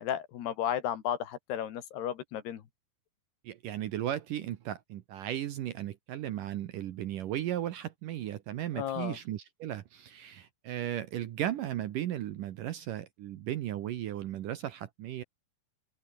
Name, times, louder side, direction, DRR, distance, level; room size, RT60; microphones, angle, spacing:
voice 1, 0.0-2.6 8.7-9.2, left 10 dB, 75° left, 4.1 m, -33 dB
voice 2, 3.4-15.2, right 12 dB, 65° right, 2.3 m, -36 dB
open air
omnidirectional pair, 4.9 m